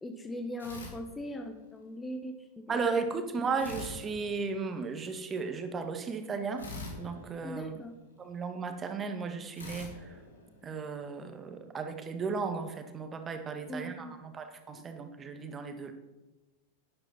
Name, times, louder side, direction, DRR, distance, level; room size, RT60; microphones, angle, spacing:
voice 1, 0.0-3.2 7.4-7.9 13.7-14.2 14.7-14.8, equal, 10° left, 6 dB, 1.1 m, -40 dB
sound 1, 0.6-1.7 3.6-5.0 6.6-8.3 9.6-11.1, left 2 dB, 70° left, 3.9 m, -46 dB
voice 2, 2.7-6.7 7.0-7.8 8.2-10.2 10.6-15.9, right 4 dB, 20° right, 7 dB, 1.7 m, -35 dB
12.0 x 11.0 x 5.7 m, 1.1 s
figure-of-eight pair, 90°, 0 cm